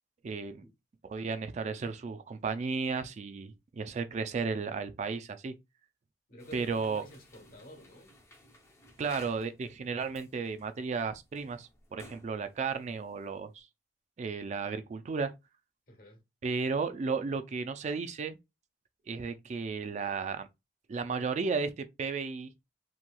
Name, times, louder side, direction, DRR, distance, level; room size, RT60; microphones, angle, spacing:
voice 1, 0.2-0.6 1.0-5.5 6.5-7.0 9.0-13.7 14.2-15.3 16.4-18.4 19.1-20.5 20.9-22.5, right 4 dB, 40° right, 0.3 m, -34 dB
voice 2, 6.3-8.1 15.9-16.2, equal, 55° left, 1.1 m, -50 dB
sound 1, 6.4-13.6, left 1 dB, 15° left, 0.6 m, -57 dB
2.9 x 2.8 x 2.2 m
head